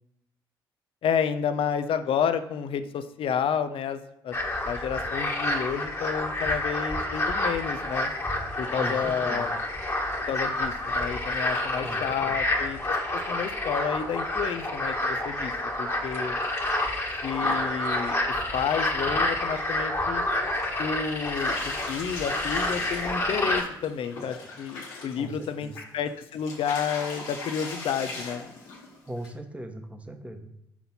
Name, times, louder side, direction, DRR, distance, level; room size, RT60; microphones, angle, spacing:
voice 1, 1.0-4.4 4.6-8.1 8.6-9.5 10.2-15.5 15.8-16.4 17.2-18.2 18.5-20.2 20.8-28.4, left 7 dB, 50° left, 10 dB, 0.5 m, -30 dB
sound 1, 4.3-23.6, left 1 dB, 20° left, 1.5 m, -29 dB
voice 2, 8.8-9.5 11.8-12.4 25.2-25.3 25.6-25.7 29.1-30.5, right 1 dB, 10° right, 6 dB, 1.0 m, -39 dB
sound 2, 20.5-20.9 21.1-29.3, left 3 dB, 70° left, 1.4 m, -39 dB
5.8 x 3.9 x 4.2 m, 0.80 s
figure-of-eight pair, 45°, 12 cm